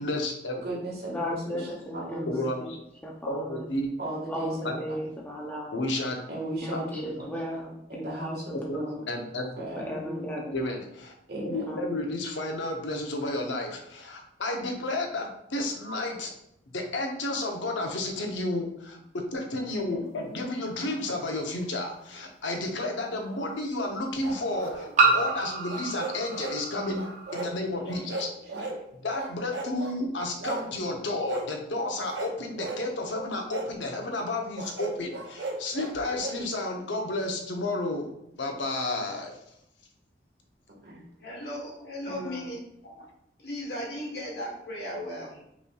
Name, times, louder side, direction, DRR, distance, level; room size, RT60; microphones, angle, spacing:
voice 1, 0.0-0.6 2.3-2.8 3.3-3.9 4.6-4.8 5.7-6.2 7.2-7.3 8.5-8.8 9.1-9.5 10.5-11.1 11.4-16.3 16.7-27.1 27.3-28.3 28.6-28.7 29.0-38.1 38.4-39.3, left 2 dB, 85° left, 2 dB, 0.8 m, -31 dB
voice 2, 0.6-1.7 1.9-2.3 4.0-4.6 6.3-7.3 7.9-9.0 9.6-10.3 11.3-11.7 19.9-20.4 27.7-28.1 28.4-28.6 40.8-41.0, right 1 dB, 55° right, -4 dB, 1.5 m, -36 dB
voice 3, 1.1-2.7 3.0-3.6 4.3-5.8 6.6-9.0 9.9-10.6 11.7-12.0 42.1-42.5, equal, 10° left, -2 dB, 0.5 m, -36 dB
sound 1, 21.0-21.1 22.8-22.9 25.0-27.5, right 3 dB, 40° right, 0.7 m, -27 dB
sound 2, 24.2-25.3 25.7-26.6 26.9-27.5 27.8-28.8 29.1-30.0 30.4-30.7 31.3-31.5 32.0-32.8 33.5-33.7 34.5-36.4, right 2 dB, 75° right, 0.6 m, -36 dB
voice 4, 41.2-43.1 43.4-45.4, equal, 60° left, -2 dB, 1.3 m, -37 dB
5.3 x 3.1 x 2.3 m, 0.77 s
head